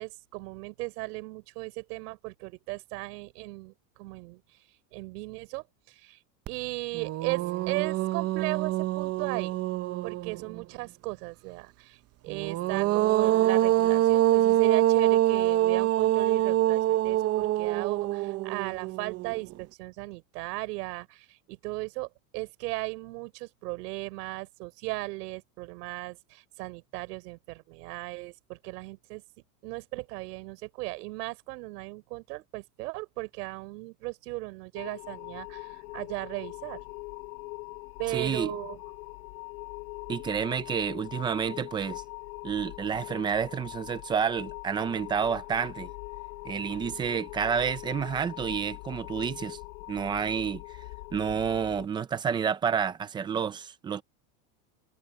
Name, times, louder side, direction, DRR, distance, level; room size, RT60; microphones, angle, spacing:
voice 1, 0.0-4.4 4.9-6.2 6.5-9.6 10.0-29.2 29.6-36.8 38.0-38.8, right 22 dB, 75° right, 3.9 m, -37 dB
sound 1, 6.5-6.6 6.9-10.6 12.3-19.5, right 14 dB, 30° right, 0.7 m, -25 dB
sound 2, 34.7-51.9, left 25 dB, 70° left, 5.2 m, -42 dB
voice 2, 38.1-38.5 40.1-42.0 42.4-45.9 46.4-49.6 49.9-50.6 51.1-54.0, right 7 dB, 10° right, 0.3 m, -29 dB
supercardioid pair, 145°, 48 cm